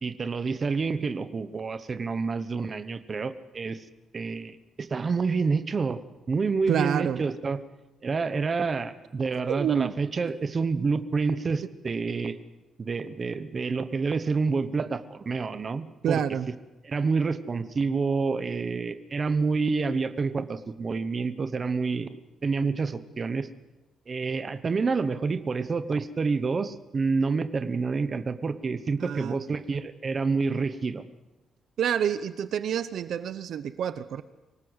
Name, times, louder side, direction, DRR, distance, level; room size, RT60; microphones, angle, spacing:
voice 1, 0.0-3.8 4.1-6.0 6.3-7.6 8.0-12.4 12.8-16.2 16.8-23.5 24.1-31.0, right 4 dB, 30° right, 11 dB, 1.1 m, -28 dB
voice 2, 6.7-7.2 9.5-9.9 16.0-16.5 29.0-29.4 31.8-34.2, right 9 dB, 60° right, 13 dB, 0.8 m, -27 dB
25.0 x 18.5 x 8.1 m, 1.1 s
cardioid pair, 170°, 0 cm